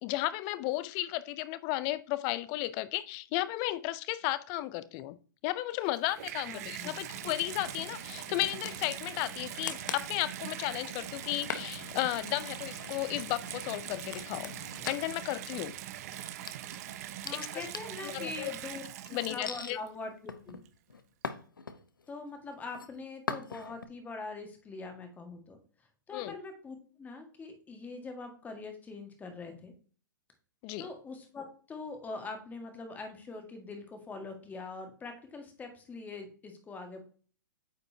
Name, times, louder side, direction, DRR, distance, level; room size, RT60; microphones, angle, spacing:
voice 1, 0.0-5.2 5.4-14.5 14.8-15.8 17.3-17.7 18.0-18.5 19.1-19.8 26.1-26.4 30.6-30.9, left 16 dB, 35° left, 0.5 m, -34 dB
Water tap faucet / Bathtub (filling or washing), 5.8-19.9 20.6-20.7, right 12 dB, 50° right, 0.6 m, -42 dB
voice 2, 6.5-7.0 17.2-18.8 19.1-20.6 22.1-25.6 26.1-29.7 30.8-37.0, left 3 dB, 15° left, 1.6 m, -43 dB
sound 1, 7.1-15.0, left 6 dB, 65° left, 1.2 m, -45 dB
sound 2, 14.7-15.7 16.1-18.8 19.5-19.7 20.3-22.1 22.5-22.9 23.3-23.9, left 4 dB, 85° left, 0.7 m, -41 dB
9.0 x 5.2 x 2.7 m
hypercardioid pair, 115°, 11 cm